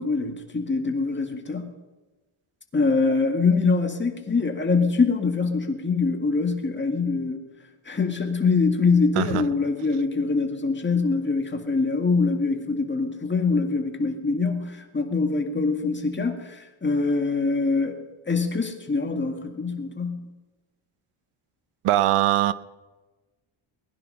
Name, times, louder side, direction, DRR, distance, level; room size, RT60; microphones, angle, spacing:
voice 1, 0.0-1.7 2.7-7.4 7.9-20.2, left 4 dB, 20° left, 4 dB, 2.0 m, -24 dB
voice 2, 21.8-22.5, right 14 dB, 85° right, 15 dB, 0.8 m, -21 dB
20.0 x 10.5 x 5.6 m, 1.2 s
cardioid pair, 120°, 49 cm